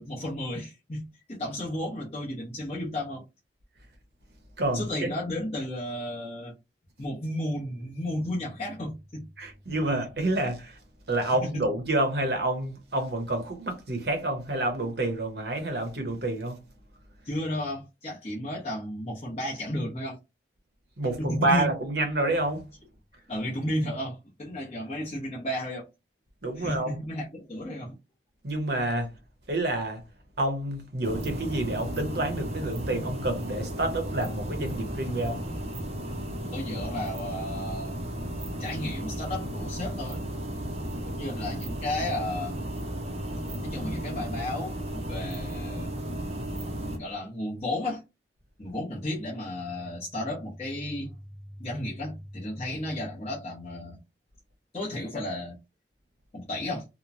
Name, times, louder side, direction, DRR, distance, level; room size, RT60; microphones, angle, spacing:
voice 1, 0.0-3.2 4.7-6.5 7.0-9.3 11.4-11.6 17.2-20.2 21.2-21.7 23.3-25.8 26.6-27.9 36.5-38.0 38.6-40.2 41.1-42.5 43.6-46.0 47.0-48.0 48.6-51.1 51.6-54.0 54.7-55.6 56.3-56.8, left 1 dB, 35° left, 0.8 m, -33 dB
voice 2, 4.6-5.1 9.4-10.8 11.1-16.6 21.0-22.6 26.4-27.0 28.4-29.1 29.5-30.0 30.4-35.4, right 2 dB, 65° right, 0.8 m, -28 dB
sound 1, 31.0-47.0, right 1 dB, 35° right, 0.6 m, -34 dB
3.0 x 2.1 x 2.5 m
head